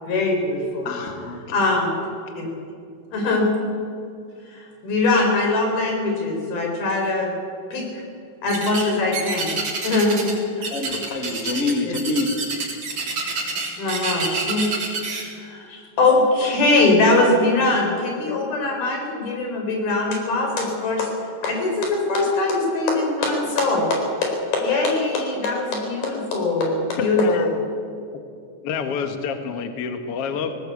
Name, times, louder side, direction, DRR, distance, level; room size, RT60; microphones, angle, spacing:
voice 1, 0.0-0.9 1.5-2.0 2.3-2.5 3.1-3.6 4.5-7.3 7.7-7.9 8.4-9.6 9.8-10.7 11.8-11.9 13.8-14.7 15.1-21.1 21.4-27.5, left 2 dB, 75° left, 1 dB, 6.2 m, -22 dB
voice 2, 0.8-1.5 2.3-2.4 10.7-12.3, left 3 dB, 30° left, 4 dB, 1.7 m, -26 dB
sound 1, 8.5-8.9 9.1-10.4 10.6-15.2, right 4 dB, 50° right, 4.6 m, -27 dB
voice 3, 27.0-27.5 28.1-28.2 28.6-30.5, left 6 dB, 55° left, 7 dB, 1.7 m, -27 dB
19.0 x 18.0 x 8.4 m, 2.3 s
omnidirectional pair, 4.3 m